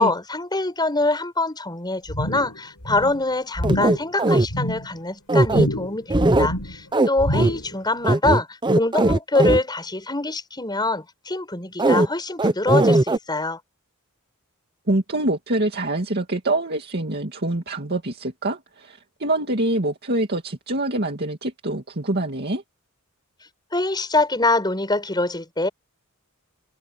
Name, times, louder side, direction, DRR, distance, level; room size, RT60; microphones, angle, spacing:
voice 1, 0.0-8.5 8.7-13.6 23.7-25.7, left 2 dB, 20° left, 6.7 m, -24 dB
sound 1, 2.1-2.6 2.8-3.2 3.6-4.1 4.4-4.9 5.5-6.0 6.3-6.8 7.2-7.7 8.1-8.2, equal, 75° left, 5.0 m, -27 dB
sound 2, 3.6-4.5 5.3-5.7 6.1-6.5 6.9-7.1 7.3-7.5 8.0-9.6 11.8-12.1 12.4-13.2, right 2 dB, 20° right, 0.8 m, -18 dB
voice 2, 14.9-22.6, right 2 dB, 50° right, 2.3 m, -25 dB
head